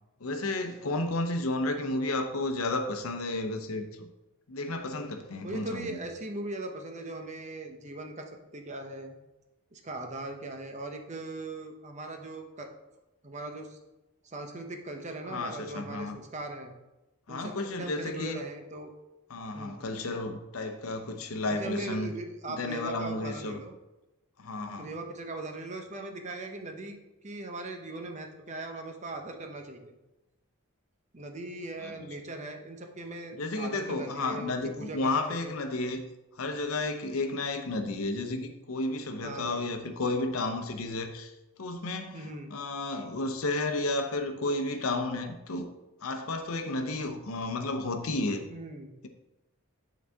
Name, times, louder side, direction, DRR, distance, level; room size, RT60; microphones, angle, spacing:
voice 1, 0.2-4.1 4.5-6.0 15.2-16.2 17.3-18.4 19.3-22.1 22.5-23.6 24.4-24.9 31.8-32.1 33.3-36.0 36.4-41.3 41.6-45.7 46.0-48.4, left 2 dB, 80° left, 0.7 m, -32 dB
voice 2, 5.4-8.2 8.5-9.2 9.7-12.7 13.2-13.8 14.2-16.7 17.3-18.9 19.5-19.9 21.5-23.7 24.8-27.0 27.2-30.0 31.1-35.5 39.2-39.7 42.1-42.5 48.5-48.9, right 2 dB, 35° right, 0.7 m, -39 dB
9.0 x 4.0 x 3.5 m
head